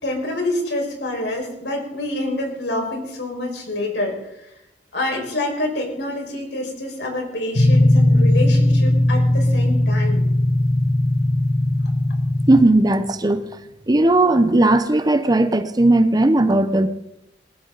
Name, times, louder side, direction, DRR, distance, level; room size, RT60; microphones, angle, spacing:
voice 1, 0.0-4.2 4.9-10.3, left 1 dB, 85° left, 1 dB, 5.6 m, -27 dB
sound 1, 7.6-12.6, left 1 dB, 65° left, 1.7 m, -17 dB
voice 2, 12.5-13.5 13.9-16.9, right 2 dB, 25° right, 11 dB, 0.8 m, -16 dB
20.5 x 15.5 x 4.1 m, 0.87 s
head